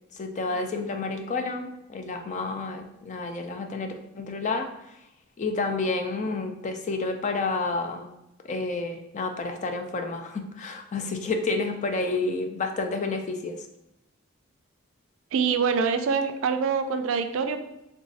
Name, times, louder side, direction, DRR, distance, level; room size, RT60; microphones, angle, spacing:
voice 1, 0.2-4.7 5.4-8.1 8.4-13.5, left 3 dB, 35° left, 5 dB, 0.3 m, -30 dB
voice 2, 15.3-17.6, right 5 dB, 65° right, 8 dB, 0.3 m, -25 dB
3.4 x 2.9 x 2.7 m, 0.86 s
head